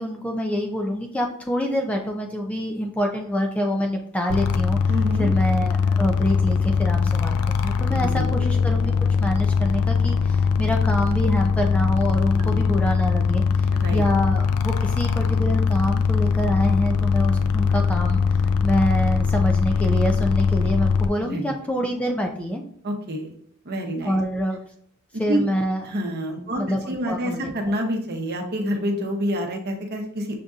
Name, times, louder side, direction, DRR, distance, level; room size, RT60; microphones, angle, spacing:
voice 1, 0.0-4.8 5.2-7.4 7.6-8.9 9.2-18.2 18.6-22.6 24.0-24.6 25.2-25.8 26.6-27.5, equal, 5° left, 2 dB, 0.3 m, -26 dB
sound 1, 4.3-21.1, left 5 dB, 85° left, 0.4 m, -21 dB
voice 2, 4.9-5.3 7.9-8.4 12.4-12.6 13.7-14.0 21.2-21.6 22.8-23.3 23.6-24.2 25.3-25.4 25.9-30.4, equal, 50° right, 3 dB, 0.8 m, -28 dB
6.5 x 2.5 x 2.4 m, 0.64 s
head